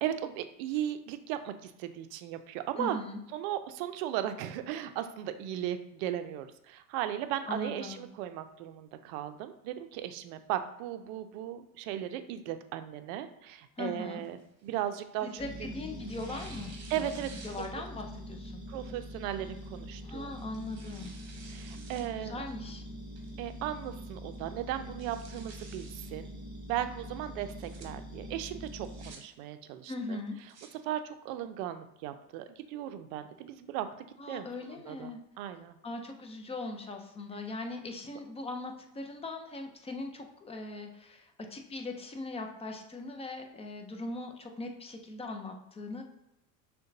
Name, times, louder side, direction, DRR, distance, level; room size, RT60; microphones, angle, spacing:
voice 1, 0.0-3.0 3.3-15.7 16.9-17.3 18.7-20.3 21.5-22.4 23.4-26.3 26.7-30.2 30.8-35.1 35.4-35.8, right 11 dB, 60° right, 9 dB, 0.5 m, -37 dB
voice 2, 2.8-3.2 7.4-8.1 13.8-14.2 15.2-17.1 17.4-18.6 20.0-21.1 22.2-22.8 29.9-30.4 34.2-35.2 35.8-46.0, left 2 dB, 15° left, 4 dB, 0.4 m, -40 dB
Tearing, 14.2-15.5 16.0-18.0 18.5-18.6 19.5-19.8 20.3-22.1 22.5-22.6 23.2-23.6 23.9-24.0 24.3-24.4 24.8-26.1 27.4-27.9 28.6-29.2 30.2-30.7, right 4 dB, 35° right, 1.1 m, -52 dB
sound 1, 15.4-29.1, equal, 10° right, 1.2 m, -44 dB
6.3 x 2.3 x 2.6 m, 0.85 s
hypercardioid pair, 80°, 48 cm